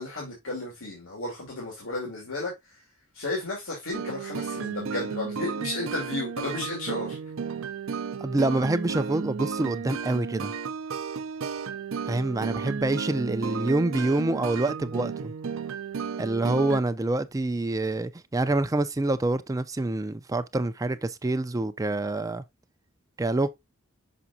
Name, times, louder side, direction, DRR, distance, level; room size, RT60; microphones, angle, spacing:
voice 1, 0.0-2.8 3.1-7.2, left 2 dB, 90° left, 2.4 m, -33 dB
sound 1, 3.9-16.8, right 6 dB, 70° right, 0.5 m, -33 dB
voice 2, 8.2-10.5 12.1-15.3 16.2-22.4 23.2-23.5, right 2 dB, 15° right, 0.4 m, -26 dB
6.0 x 6.0 x 2.7 m
head